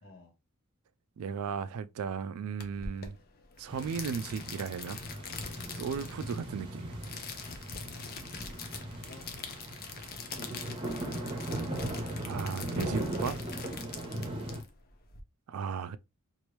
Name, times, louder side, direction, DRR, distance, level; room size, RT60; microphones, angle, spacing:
voice 1, 0.0-0.3 8.6-8.7 9.0-9.7 10.3-11.1 14.2-14.5, left 1 dB, 60° left, 0.9 m, -51 dB
voice 2, 1.2-3.2 3.6-5.0 5.8-7.0 12.2-13.4 15.5-16.0, right 6 dB, 70° right, 0.3 m, -36 dB
sound 1, 2.6-15.2, left 5 dB, 40° left, 0.6 m, -44 dB
sound 2, 3.7-14.6, right 1 dB, 25° right, 0.8 m, -38 dB
3.0 x 2.6 x 3.0 m
head